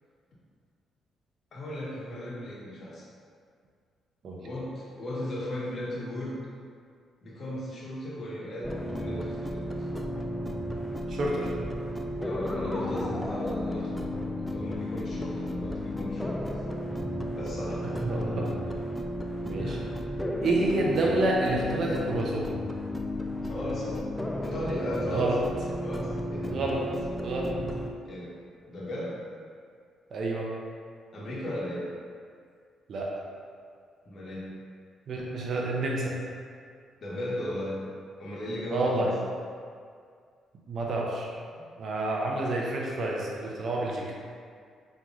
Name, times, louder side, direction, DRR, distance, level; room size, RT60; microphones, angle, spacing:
voice 1, 1.5-3.1 4.4-6.4 7.2-9.9 12.2-16.5 17.3-18.5 19.6-20.0 23.4-24.0 24.4-25.5 25.8-26.6 28.0-28.3 28.7-29.2 31.1-31.9 34.0-34.5 37.0-37.8 38.2-39.1 41.5-41.6, left 1 dB, 50° left, -7 dB, 1.2 m, -36 dB
sound 1, 8.6-27.9, left 1 dB, 5° left, 0.3 m, -33 dB
voice 2, 11.1-11.6 18.1-18.5 19.4-19.8 20.4-22.5 25.1-25.4 26.5-26.8 27.2-27.6 30.1-30.5 32.9-33.1 35.1-36.1 38.7-39.1 40.7-41.3 41.8-44.1, right 2 dB, 55° right, -2 dB, 0.6 m, -29 dB
5.2 x 3.0 x 2.4 m, 2.1 s
cardioid pair, 90°, 0 cm